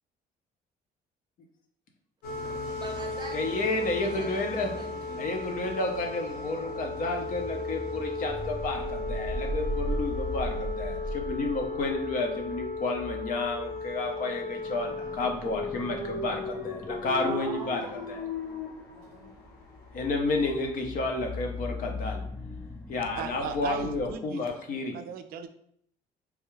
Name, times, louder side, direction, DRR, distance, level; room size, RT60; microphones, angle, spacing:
sound 1, 2.2-20.0, left 3 dB, 70° left, 1.1 m, -36 dB
voice 1, 2.8-5.3 17.2-18.6 18.9-19.4, right 3 dB, 25° right, 2 dB, 0.6 m, -44 dB
voice 2, 3.3-4.7 5.2-18.3 19.9-22.2 22.9-24.9, left 2 dB, 55° left, 3 dB, 0.7 m, -31 dB
sound 2, 6.3-24.1, equal, 10° left, 0.4 m, -40 dB
voice 3, 23.1-24.5 24.8-25.5, right 8 dB, 60° right, 9 dB, 0.4 m, -37 dB
3.4 x 2.3 x 3.1 m, 0.70 s
cardioid pair, 110°, 17 cm